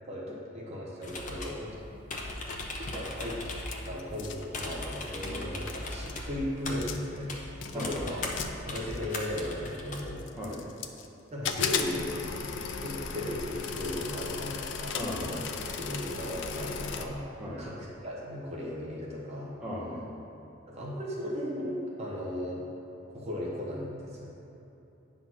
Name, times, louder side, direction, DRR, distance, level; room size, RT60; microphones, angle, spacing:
voice 1, 0.1-1.8 2.9-3.4 3.8-7.4 7.7-8.2 8.6-10.2 11.3-12.1 12.8-15.0 15.3-15.4 15.8-19.6 20.7-22.7 23.1-24.4, left 1 dB, 35° right, -4 dB, 1.1 m, -36 dB
sound 1, 1.0-10.1, left 2 dB, 40° left, 0.9 m, -39 dB
sound 2, 2.3-3.7 4.0-4.7 5.4-5.5 5.7-6.2 6.7-7.2 7.6-9.4 9.9-11.1 11.4-17.1, left 5 dB, 65° left, 0.5 m, -36 dB
voice 2, 7.7-8.1 10.3-10.6 14.9-15.5 17.4-17.7 19.6-20.2, equal, 5° right, -8 dB, 1.6 m, -37 dB
9.0 x 3.9 x 6.2 m, 2.9 s
head